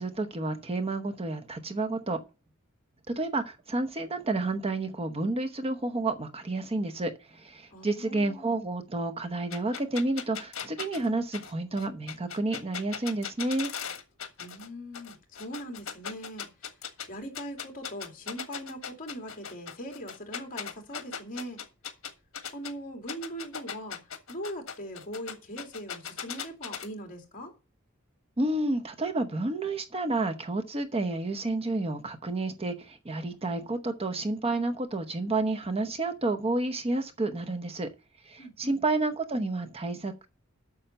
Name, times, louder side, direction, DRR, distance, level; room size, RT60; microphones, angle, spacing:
voice 1, 0.0-2.2 3.1-13.7 28.4-37.9 38.3-40.3, right 2 dB, 30° right, 0.9 m, -30 dB
voice 2, 7.7-8.6 14.4-16.5 17.1-21.6 22.5-24.0 24.3-27.5 38.4-38.8, equal, 40° left, 2.8 m, -41 dB
sound 1, 9.5-14.7 14.9-17.1 17.3-22.7 23.1-26.9, left 7 dB, 70° left, 1.5 m, -38 dB
8.7 x 6.5 x 6.7 m
head